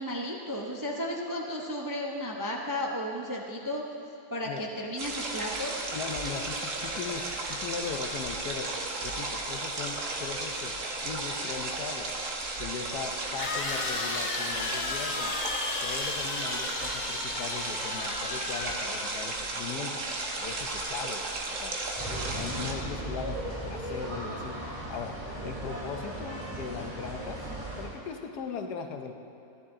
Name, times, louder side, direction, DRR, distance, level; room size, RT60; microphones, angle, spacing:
voice 1, 0.0-3.8 4.3-5.7, left 1 dB, 25° right, -1 dB, 0.4 m, -34 dB
sound 1, 5.0-22.7, right 2 dB, 55° right, 1.4 m, -34 dB
voice 2, 5.9-8.7 9.0-12.1 12.6-15.3 15.8-20.0 20.4-21.2 21.5-21.8 22.2-24.6 24.9-25.1 25.4-27.4 27.8-29.1, left 6 dB, 90° left, 5 dB, 1.4 m, -39 dB
sound 2, 11.8-11.9 13.4-19.5, left 4 dB, 50° left, 0.5 m, -35 dB
sound 3, 22.0-27.9, right 1 dB, 10° right, 2.5 m, -37 dB
14.0 x 11.0 x 3.7 m, 2.8 s
omnidirectional pair, 1.7 m